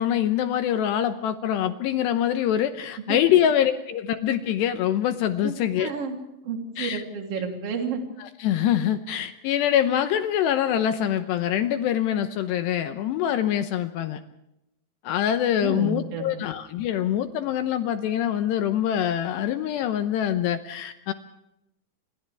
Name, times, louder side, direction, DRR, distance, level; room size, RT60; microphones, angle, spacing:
voice 1, 0.0-5.9 6.8-7.0 8.2-14.2 15.0-21.1, left 10 dB, 75° left, 9 dB, 2.6 m, -24 dB
voice 2, 5.8-6.2 6.4-8.0 15.6-16.2, right 5 dB, 35° right, 2 dB, 3.5 m, -30 dB
29.0 x 26.5 x 3.5 m, 0.87 s
omnidirectional pair, 5.9 m